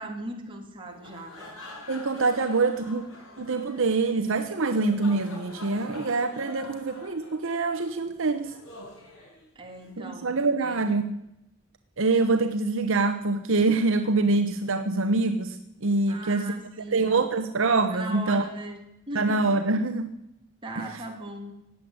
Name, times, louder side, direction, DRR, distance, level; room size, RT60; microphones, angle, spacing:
voice 1, 0.0-1.5 6.6-6.7 9.5-10.8 16.1-17.1 17.9-19.4 20.6-21.5, right 1 dB, 25° right, 1 dB, 2.7 m, -39 dB
sound 1, 0.9-9.9, left 2 dB, 65° left, 6.7 m, -46 dB
voice 2, 1.9-3.0 3.4-8.5 10.0-11.2 12.0-16.5 16.9-18.4 19.1-20.1 20.8-21.0, right 3 dB, 60° right, 8 dB, 0.9 m, -25 dB
16.0 x 8.6 x 9.6 m, 0.86 s
head